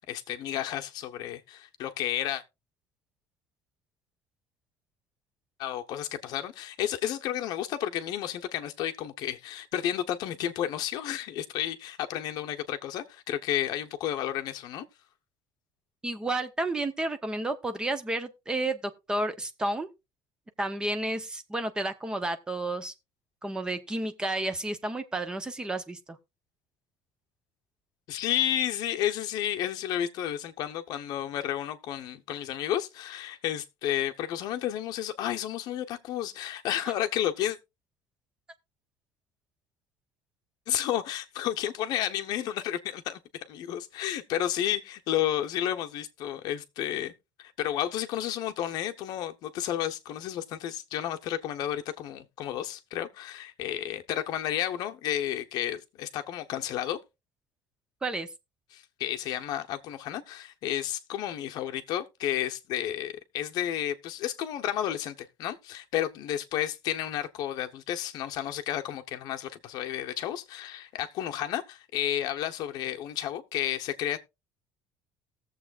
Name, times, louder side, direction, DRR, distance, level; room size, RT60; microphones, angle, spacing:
voice 1, 0.1-2.4 5.6-14.8 28.1-37.6 40.7-43.2 43.5-47.1 47.4-57.0 58.7-74.2, left 11 dB, 50° left, 0.9 m, -32 dB
voice 2, 16.0-19.9 20.6-22.9 23.4-26.0 58.0-58.3, right 2 dB, 10° right, 0.7 m, -31 dB
18.5 x 7.3 x 2.4 m
cardioid pair, 175°, 9 cm